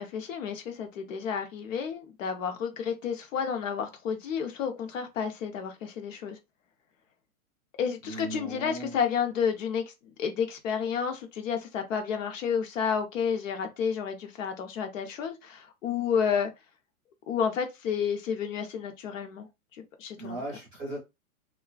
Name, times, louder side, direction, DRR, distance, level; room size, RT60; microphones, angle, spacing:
voice 1, 0.0-6.4 7.8-9.9 10.2-16.5 17.3-19.5 19.7-20.4, left 7 dB, 60° left, 0.7 m, -31 dB
voice 2, 8.0-9.0 20.2-21.0, right 2 dB, 15° right, 0.4 m, -37 dB
2.4 x 2.3 x 2.3 m
hypercardioid pair, 150°, 44 cm